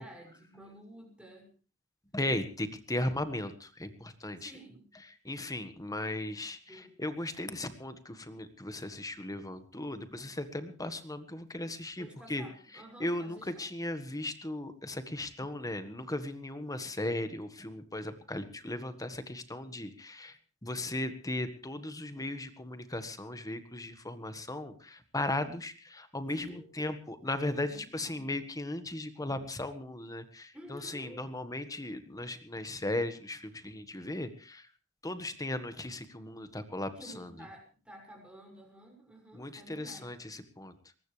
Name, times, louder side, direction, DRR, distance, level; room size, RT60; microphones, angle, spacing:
voice 1, 0.0-1.5 4.4-4.8 6.6-7.0 11.9-13.6 26.3-26.7 27.5-28.4 30.5-31.2 37.0-40.2, right 1 dB, 5° right, 0 dB, 6.3 m, -51 dB
voice 2, 2.1-4.5 4.9-12.4 13.0-34.7 35.0-37.3 39.3-40.7, left 1 dB, 15° left, 10 dB, 1.6 m, -37 dB
22.0 x 19.5 x 3.3 m, 0.36 s
head